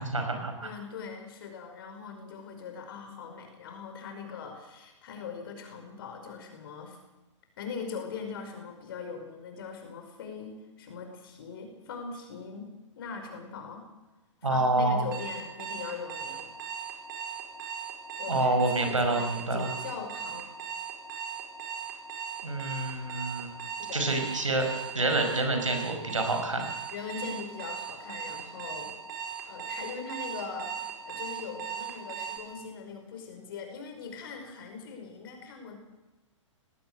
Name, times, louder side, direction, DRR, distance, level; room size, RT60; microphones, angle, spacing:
voice 1, 0.0-0.7 14.4-15.0 18.3-19.7 22.4-23.5 23.9-26.7, right 2 dB, 75° right, 5 dB, 5.4 m, -27 dB
voice 2, 0.6-7.0 7.6-13.9 14.5-16.5 18.2-19.3 19.5-20.5 23.8-24.4 26.9-28.9 29.5-35.8, left 5 dB, 45° left, 5 dB, 5.4 m, -41 dB
Alarm, 15.1-32.4, right 7 dB, 40° right, 4.7 m, -38 dB
19.0 x 18.0 x 7.9 m, 1.1 s
figure-of-eight pair, 115°, 17 cm